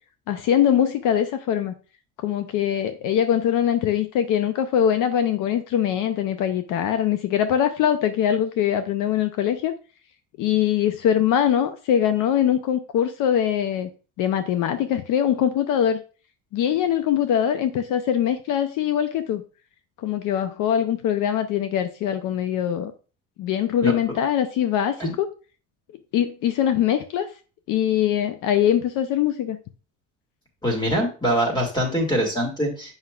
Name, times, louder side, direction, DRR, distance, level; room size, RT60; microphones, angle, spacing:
voice 1, 0.3-1.7 2.2-9.7 10.4-13.9 14.2-16.0 16.5-19.4 20.0-22.9 23.4-25.3 26.1-27.3 27.7-29.6, left 9 dB, 65° left, 9 dB, 0.6 m, -22 dB
voice 2, 30.6-32.9, equal, 10° left, 2 dB, 2.1 m, -23 dB
7.8 x 5.6 x 2.3 m, 0.35 s
cardioid pair, 145°, 34 cm